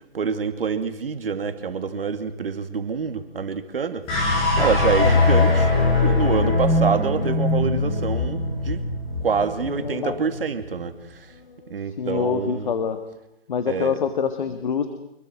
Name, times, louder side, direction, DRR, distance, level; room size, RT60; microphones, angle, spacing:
voice 1, 0.1-4.0 4.6-5.7 6.0-8.8 9.2-10.9 11.7-12.8 13.7-13.9, right 5 dB, 65° right, 9 dB, 2.5 m, -26 dB
sound 1, 4.1-10.5, left 3 dB, 15° left, 6.8 m, -21 dB
voice 2, 9.6-10.2 11.3-13.0 13.5-14.9, left 7 dB, 50° left, 9 dB, 1.9 m, -26 dB
26.5 x 22.5 x 6.3 m, 0.83 s
hypercardioid pair, 155°, 31 cm